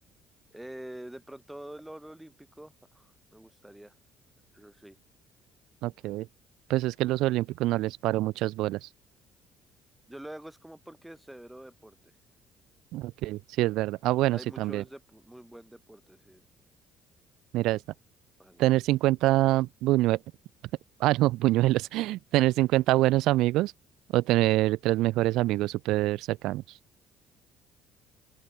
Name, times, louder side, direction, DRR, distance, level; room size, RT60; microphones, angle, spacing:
voice 1, 0.5-3.9 4.5-5.0 10.1-12.1 14.3-16.5 18.4-18.6, right 1 dB, 5° right, 6.5 m, -46 dB
voice 2, 5.8-6.3 6.7-8.9 12.9-14.8 17.5-17.8 18.6-20.2 21.0-23.7 24.1-26.6, right 17 dB, 80° right, 0.4 m, -25 dB
open air
supercardioid pair, 90°, 0 cm